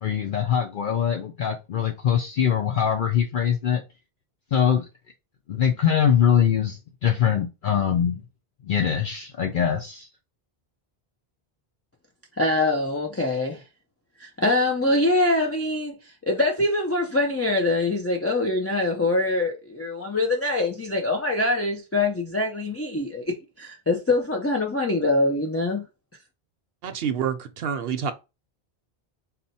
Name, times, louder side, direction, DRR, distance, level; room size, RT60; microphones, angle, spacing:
voice 1, 0.0-3.8 4.5-4.8 5.5-8.2 8.6-10.1, left 8 dB, 60° left, 0.7 m, -23 dB
voice 2, 12.4-13.6 14.2-25.8, left 2 dB, 20° left, 0.4 m, -24 dB
voice 3, 26.8-28.1, right 7 dB, 65° right, 0.8 m, -27 dB
4.1 x 2.1 x 4.1 m
omnidirectional pair, 1.1 m